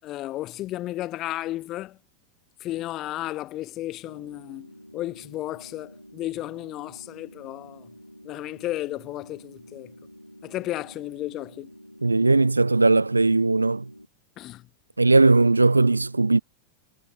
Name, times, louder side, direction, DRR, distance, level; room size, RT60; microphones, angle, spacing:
voice 1, 0.0-2.0 2.6-7.9 8.2-9.9 10.4-11.7 14.4-14.7, left 15 dB, 35° left, 1.4 m, -33 dB
sound 1, 4.0-14.1, equal, 90° left, 2.7 m, -48 dB
voice 2, 12.0-13.9 15.0-16.4, right 3 dB, 80° right, 0.4 m, -19 dB
figure-of-eight pair, 90°, 0 cm